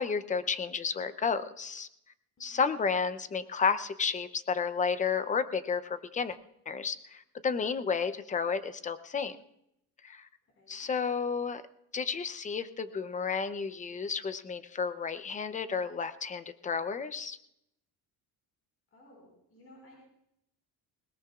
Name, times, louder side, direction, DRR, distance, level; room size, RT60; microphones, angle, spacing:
voice 1, 0.0-1.9 2.4-6.4 6.7-9.4 10.0-10.3 10.7-11.6 11.9-17.4, left 5 dB, 20° left, 12 dB, 0.6 m, -32 dB
voice 2, 2.4-2.7 10.4-10.9 18.9-20.0, left 1 dB, 35° left, -2 dB, 5.0 m, -58 dB
21.5 x 20.0 x 2.4 m, 0.78 s
cardioid pair, 150°, 39 cm